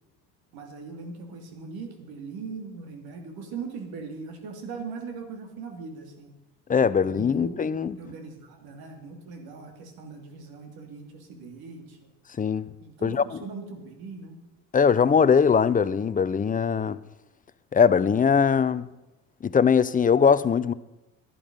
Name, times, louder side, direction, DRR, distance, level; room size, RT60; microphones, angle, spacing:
voice 1, 0.5-6.3 6.9-7.5 8.0-12.0 12.8-14.4, right 4 dB, 65° right, 3.0 m, -40 dB
voice 2, 6.7-8.0 12.4-12.7 13.0-13.2 14.7-17.0 17.7-18.9 19.4-20.7, left 6 dB, 20° left, 0.6 m, -21 dB
12.5 x 11.0 x 5.5 m
supercardioid pair, 90°, 39 cm